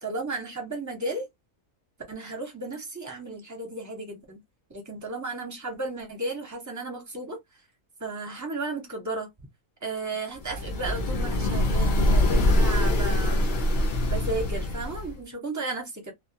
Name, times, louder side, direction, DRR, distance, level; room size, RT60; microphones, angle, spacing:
voice 1, 0.0-1.3 2.1-4.4 4.7-7.4 8.0-9.3 9.8-13.5 14.1-16.1, right 2 dB, 20° right, 0.6 m, -34 dB
sound 1, 10.4-15.2, left 1 dB, 55° left, 0.5 m, -24 dB
2.3 x 2.2 x 2.7 m
omnidirectional pair, 1.5 m